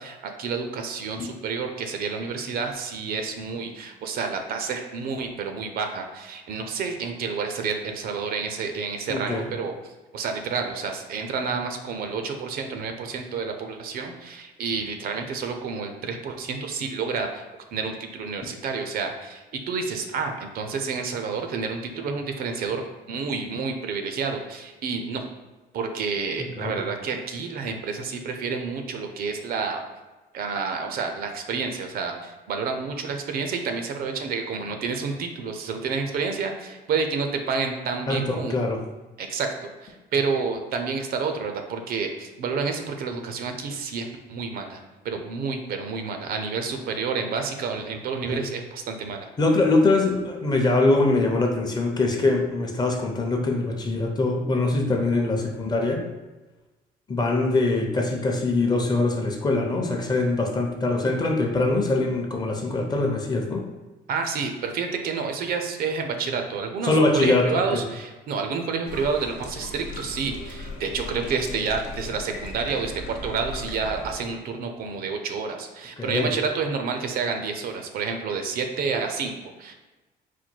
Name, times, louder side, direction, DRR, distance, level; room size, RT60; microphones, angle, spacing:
voice 1, 0.0-25.3 25.7-29.8 30.3-38.6 39.2-49.3 64.1-79.7, right 5 dB, 60° right, 5 dB, 0.6 m, -29 dB
voice 2, 9.1-9.4 26.6-26.7 38.1-38.8 48.3-48.4 49.4-56.0 57.1-63.6 66.8-67.8 76.0-76.3, left 2 dB, 25° left, 1 dB, 0.7 m, -23 dB
sound 1, 68.8-74.1, left 2 dB, 90° left, 0.8 m, -37 dB
4.3 x 2.2 x 4.4 m, 1.1 s
cardioid pair, 110°, 17 cm